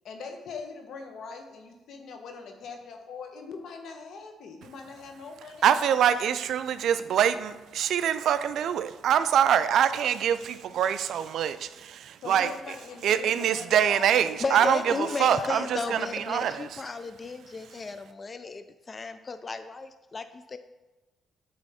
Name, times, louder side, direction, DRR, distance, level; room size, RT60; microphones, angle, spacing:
voice 1, 0.0-6.1 12.2-14.2 14.4-14.5 14.8-16.0, left 4 dB, 70° left, 4 dB, 1.0 m, -42 dB
voice 2, 5.6-12.5 13.0-16.7, right 9 dB, 75° right, 13 dB, 0.3 m, -24 dB
voice 3, 14.4-19.9 20.1-20.2 20.5-20.6, left 4 dB, 35° left, 10 dB, 0.3 m, -34 dB
8.4 x 3.5 x 4.2 m, 1.1 s
cardioid pair, 90°, 0 cm